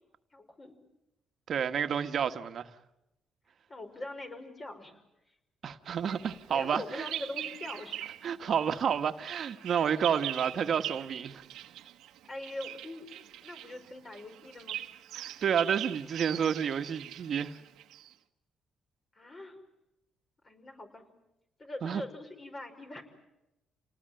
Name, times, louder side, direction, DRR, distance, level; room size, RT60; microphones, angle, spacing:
voice 1, 0.3-0.7 3.7-5.0 5.8-5.9 6.5-8.1 12.2-13.1 13.4-14.8 19.1-19.6 20.4-21.1 21.6-23.0, left 1 dB, 35° left, 5.7 m, -42 dB
voice 2, 1.5-2.7 5.6-7.1 8.2-11.4 15.1-17.6 21.8-22.0, right 7 dB, 60° right, 1.5 m, -30 dB
Bird vocalization bird call bird song, 6.1-8.3 8.6-18.1, right 13 dB, 85° right, 1.3 m, -42 dB
29.0 x 19.5 x 9.0 m
cardioid pair, 90°, 0 cm